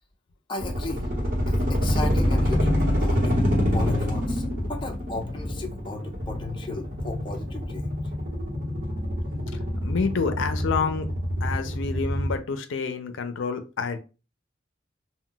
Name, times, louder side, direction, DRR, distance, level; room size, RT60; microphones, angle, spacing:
voice 1, 0.5-1.1 1.5-3.4 3.7-8.0, left 2 dB, 25° left, 1 dB, 0.5 m, -35 dB
sound 1, 0.6-12.4, equal, 45° right, 1.1 m, -26 dB
voice 2, 9.5-14.0, left 5 dB, 80° left, 8 dB, 0.5 m, -29 dB
2.3 x 2.2 x 3.8 m, 0.32 s
head